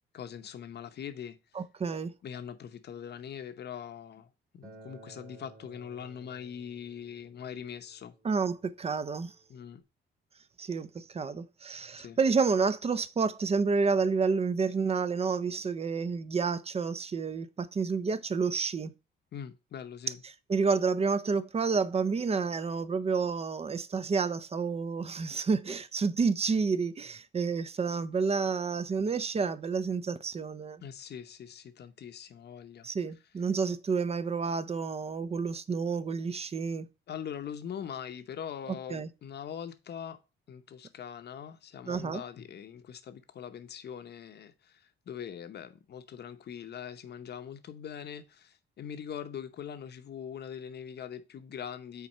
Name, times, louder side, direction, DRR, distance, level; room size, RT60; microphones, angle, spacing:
voice 1, 0.1-1.4 2.2-8.1 9.5-9.8 11.9-12.2 19.3-20.2 30.8-32.9 37.1-40.2 40.5-52.1, left 8 dB, 55° left, 0.9 m, -42 dB
voice 2, 1.6-2.1 8.2-9.3 10.6-18.9 20.5-30.8 32.8-36.9 38.9-39.1 41.9-42.2, right 5 dB, 30° right, 0.6 m, -29 dB
Acoustic guitar, 4.6-9.8, right 2 dB, 45° right, 2.6 m, -56 dB
5.9 x 4.2 x 5.4 m
cardioid pair, 90°, 20 cm